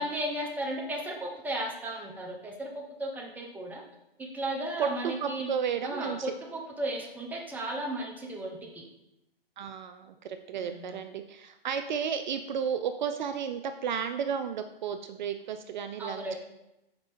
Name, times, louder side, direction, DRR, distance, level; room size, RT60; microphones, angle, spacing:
voice 1, 0.0-3.8 4.2-5.5 5.8-8.8 10.5-11.0 16.0-16.3, right 1 dB, 5° right, 0 dB, 0.6 m, -35 dB
voice 2, 4.8-6.3 9.6-16.3, right 7 dB, 50° right, 8 dB, 0.4 m, -33 dB
5.4 x 4.4 x 4.2 m, 0.90 s
hypercardioid pair, 130°, 30 cm